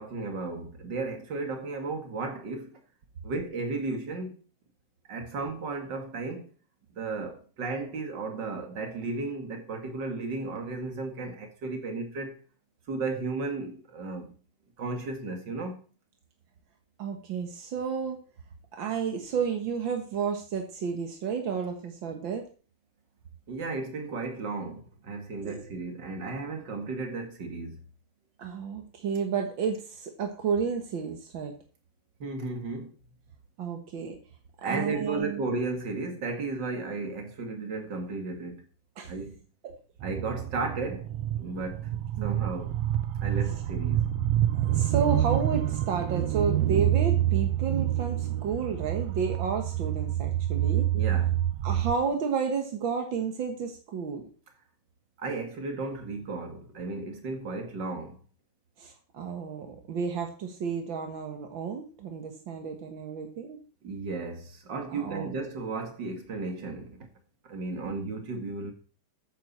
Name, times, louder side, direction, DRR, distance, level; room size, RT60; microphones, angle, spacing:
voice 1, 0.0-2.8 3.2-4.3 5.1-6.5 6.9-12.4 12.9-14.3 14.8-15.8 23.5-27.8 32.2-32.9 34.6-38.6 39.1-39.4 40.0-41.1 41.4-41.9 42.2-42.8 43.2-44.1 50.9-51.4 55.2-58.2 63.8-67.1 67.5-68.7, right 3 dB, 35° right, 2.2 m, -34 dB
voice 2, 17.0-18.2 18.7-22.5 25.4-25.6 28.4-31.5 33.6-34.2 34.6-35.4 39.0-39.1 39.6-39.7 42.2-42.3 43.4-43.6 44.5-50.9 51.6-54.3 58.8-63.6 64.9-65.3, right 6 dB, 55° right, 1.4 m, -31 dB
sound 1, 40.0-51.9, right 13 dB, 85° right, 1.5 m, -27 dB
13.5 x 9.5 x 4.3 m
omnidirectional pair, 3.9 m